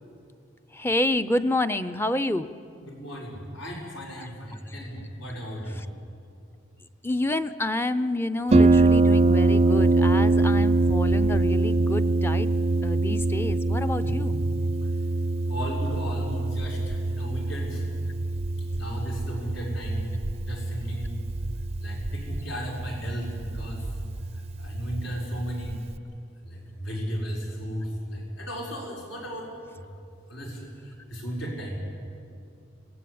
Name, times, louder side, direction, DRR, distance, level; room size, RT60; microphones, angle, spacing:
voice 1, 0.7-2.5 4.2-4.3 4.7-4.8 5.7-5.9 7.0-12.5 12.8-14.4, left 1 dB, 10° left, 10 dB, 0.6 m, -28 dB
voice 2, 2.8-5.8 14.0-14.2 15.5-17.8 18.8-20.1 20.4-21.2 21.8-23.9 24.3-25.8 26.4-29.5 29.7-29.8 30.3-31.8, equal, 75° left, -3 dB, 5.9 m, -35 dB
Harp, 8.5-26.0, right 2 dB, 30° right, 0.5 m, -24 dB
26.5 x 19.5 x 8.6 m, 2.5 s
head